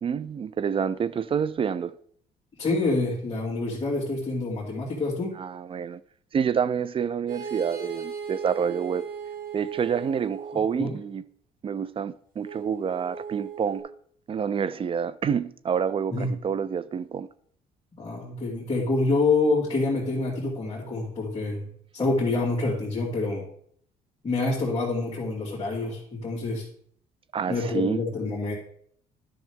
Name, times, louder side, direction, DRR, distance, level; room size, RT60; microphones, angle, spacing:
voice 1, 0.0-2.0 5.4-6.0 6.3-9.0 9.5-11.2 11.6-13.9 14.3-17.3 27.3-28.0, right 7 dB, 30° right, 0.4 m, -28 dB
voice 2, 2.6-5.4 10.8-10.9 16.1-16.3 18.0-21.7 21.9-23.4 24.2-26.7 27.5-28.5, left 3 dB, 25° left, 2.4 m, -27 dB
sound 1, 7.3-10.9 12.4-13.8, right 7 dB, 55° right, 1.8 m, -37 dB
10.5 x 6.4 x 3.6 m
cardioid pair, 110°, 17 cm